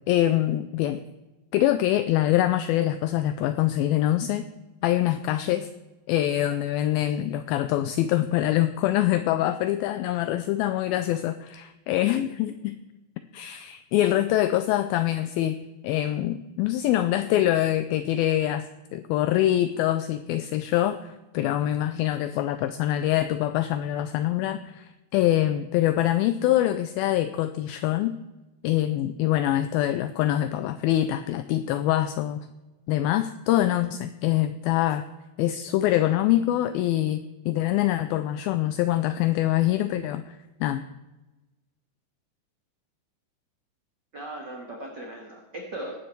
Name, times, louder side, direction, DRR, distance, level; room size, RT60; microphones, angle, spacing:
voice 1, 0.1-1.0 1.5-4.5 4.8-5.7 6.1-12.7 13.3-15.6 15.8-18.7 18.9-28.2 28.6-32.5 32.9-35.0 35.4-40.8, left 13 dB, 85° left, 11 dB, 2.1 m, -24 dB
voice 2, 44.1-46.1, right 1 dB, 45° right, 0 dB, 1.4 m, -38 dB
20.0 x 9.3 x 4.5 m, 1.1 s
omnidirectional pair, 4.8 m